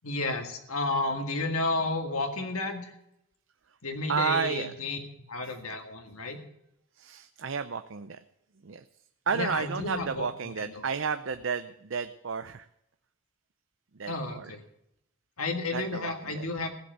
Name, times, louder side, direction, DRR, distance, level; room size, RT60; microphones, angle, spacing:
voice 1, 0.0-2.9 3.8-5.0 5.3-6.4 9.3-10.3 10.6-10.8 14.1-14.6 15.4-16.7, left 2 dB, 80° left, 4 dB, 2.0 m, -32 dB
voice 2, 4.1-4.7 5.4-5.5 7.0-8.2 8.6-8.8 9.3-12.7 13.9-14.5 15.7-16.5, right 6 dB, 60° right, 10 dB, 0.6 m, -32 dB
16.0 x 8.0 x 8.0 m, 0.78 s
head